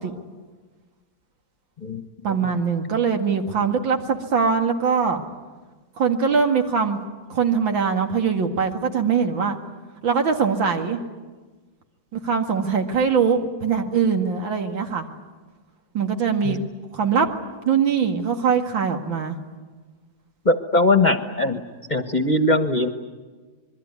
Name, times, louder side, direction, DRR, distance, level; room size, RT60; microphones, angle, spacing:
voice 1, 2.2-5.2 6.0-7.0 7.3-9.6 10.0-11.0 12.1-15.1 15.9-16.6 16.9-17.3 17.7-19.4, right 6 dB, 85° right, 4 dB, 2.8 m, -22 dB
voice 2, 20.4-21.6 21.9-22.9, left 2 dB, 25° left, 8 dB, 1.2 m, -20 dB
26.5 x 22.5 x 9.6 m, 1.3 s
omnidirectional pair, 2.1 m